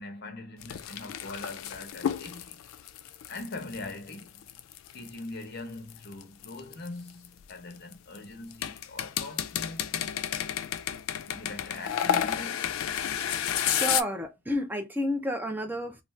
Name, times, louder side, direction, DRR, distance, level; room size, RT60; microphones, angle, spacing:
voice 1, 0.0-2.6 3.3-4.5 4.9-10.3 11.3-12.7, left 2 dB, 55° left, 0.8 m, -42 dB
sound 1, 0.6-5.2 5.9-8.2 8.5-14.0, left 9 dB, 85° left, 0.3 m, -31 dB
voice 2, 13.6-16.0, equal, 10° right, 0.5 m, -31 dB
2.5 x 2.3 x 3.1 m
head